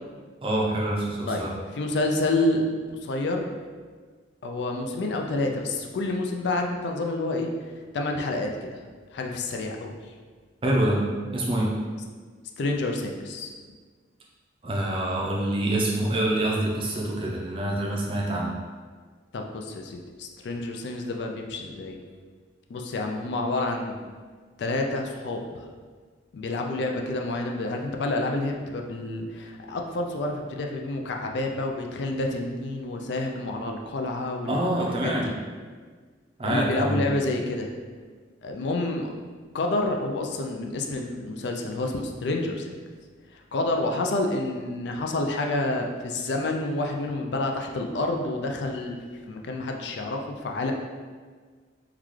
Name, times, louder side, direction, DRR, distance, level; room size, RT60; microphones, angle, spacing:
voice 1, 0.4-1.5 10.6-11.0 11.3-11.7 14.6-18.5 34.5-35.3 36.4-37.0, right 1 dB, 30° right, -3 dB, 0.5 m, -26 dB
voice 2, 1.7-2.7 3.0-3.5 4.4-7.5 7.9-8.8 9.1-9.9 12.6-13.5 19.3-22.0 22.7-24.0 24.6-25.7 26.3-34.7 35.0-35.3 36.4-37.7 38.4-39.1 39.5-42.8 43.5-49.0 49.3-50.7, left 2 dB, 70° left, 2 dB, 0.4 m, -28 dB
3.8 x 2.3 x 3.1 m, 1.5 s
head